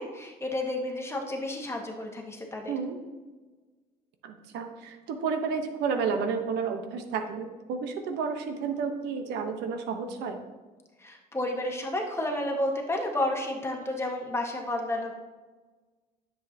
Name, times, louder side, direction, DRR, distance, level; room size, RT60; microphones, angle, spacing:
voice 1, 0.0-2.7 11.0-15.1, left 1 dB, 15° left, 1 dB, 1.5 m, -31 dB
voice 2, 4.2-10.4, right 5 dB, 85° right, 6 dB, 1.1 m, -31 dB
10.0 x 7.5 x 2.9 m, 1.3 s
cardioid pair, 110°, 17 cm